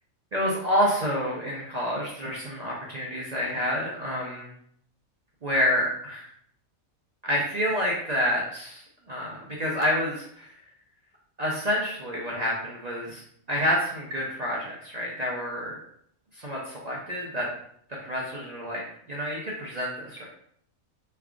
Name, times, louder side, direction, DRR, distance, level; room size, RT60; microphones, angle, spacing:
voice 1, 0.3-4.5 5.4-6.3 7.2-10.5 11.4-13.2 13.5-15.8 16.3-17.5 18.0-18.8 19.1-20.2, equal, 55° right, -4 dB, 0.4 m, -28 dB
3.3 x 2.3 x 3.6 m, 0.67 s
omnidirectional pair, 1.5 m